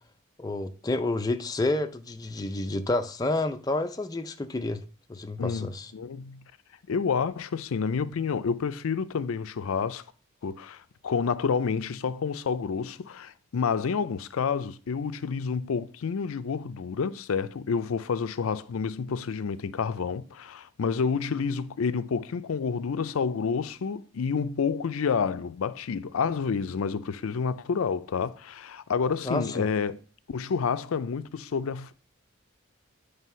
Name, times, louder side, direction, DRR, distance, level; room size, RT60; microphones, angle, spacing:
voice 1, 0.4-4.8 5.1-5.9 29.2-29.6, left 2 dB, 20° left, 0.4 m, -29 dB
voice 2, 5.4-6.4 6.9-10.0 10.4-30.0 30.3-31.9, left 5 dB, 80° left, 0.4 m, -29 dB
9.1 x 3.4 x 5.6 m
head